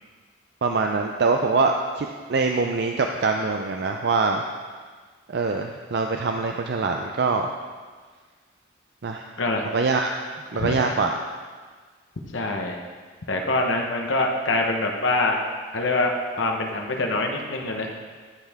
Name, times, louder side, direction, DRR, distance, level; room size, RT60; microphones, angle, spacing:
voice 1, 0.6-4.4 5.3-7.5 9.0-9.3 9.6-10.1 10.5-11.2, right 4 dB, 55° right, 3 dB, 0.4 m, -24 dB
voice 2, 10.5-10.9 12.3-12.8 13.3-15.4 15.7-16.1 16.4-17.9, left 2 dB, 80° left, 2 dB, 1.0 m, -24 dB
11.0 x 6.6 x 3.6 m, 1.5 s
head